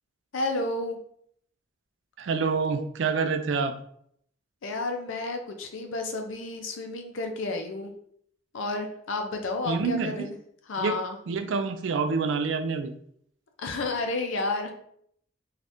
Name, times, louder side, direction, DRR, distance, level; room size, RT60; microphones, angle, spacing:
voice 1, 0.3-1.0 4.6-7.9 8.5-10.4 10.7-11.2 13.6-14.7, left 2 dB, 80° left, 4 dB, 0.5 m, -31 dB
voice 2, 2.2-3.8 9.7-10.3 10.8-11.0 11.3-12.9, right 5 dB, 65° right, 8 dB, 0.3 m, -27 dB
3.4 x 2.4 x 2.6 m, 0.66 s
head